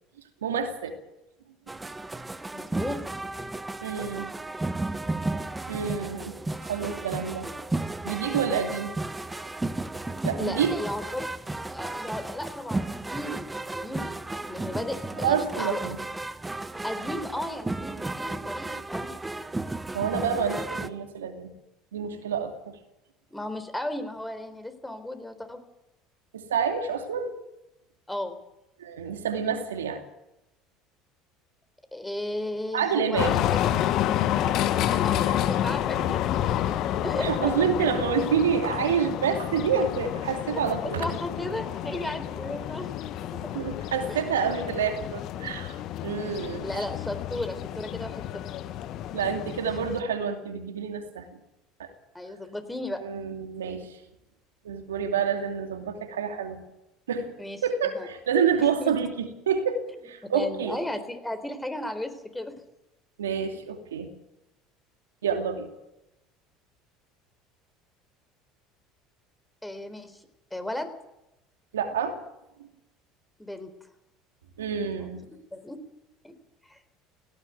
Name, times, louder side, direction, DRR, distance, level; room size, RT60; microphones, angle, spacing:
voice 1, 0.4-1.0 3.8-4.3 5.7-6.4 6.6-7.5 8.0-8.9 10.2-10.8 15.2-16.0 19.9-21.5 21.9-22.8 26.3-27.4 28.8-30.0 32.7-33.4 37.2-41.1 43.5-45.8 46.0-46.6 49.1-51.4 51.8-51.9 53.0-53.9 54.6-56.6 57.1-57.3 57.6-60.8 63.2-64.1 65.2-65.7 71.7-72.2 74.6-75.2, right 7 dB, 85° right, 5 dB, 2.6 m, -28 dB
sound 1, 1.7-20.9, right 2 dB, 15° right, 1.4 m, -34 dB
voice 2, 2.5-3.0 10.4-11.3 11.7-14.1 14.5-15.8 16.8-19.1 23.3-25.6 28.1-28.4 31.9-33.6 34.4-36.6 37.0-37.8 40.5-42.9 43.3-43.6 44.1-44.5 46.6-48.4 49.7-49.8 52.1-53.0 57.4-58.1 58.6-58.9 60.3-62.6 69.6-70.2 70.5-70.9 73.4-73.7 75.0-75.1 75.5-75.8 76.2-76.4 76.6-76.8, left 1 dB, 10° left, 9 dB, 3.9 m, -35 dB
sound 2, 33.2-50.0, left 11 dB, 55° left, 1.2 m, -29 dB
18.0 x 16.0 x 9.3 m, 0.90 s
hypercardioid pair, 70°, 0 cm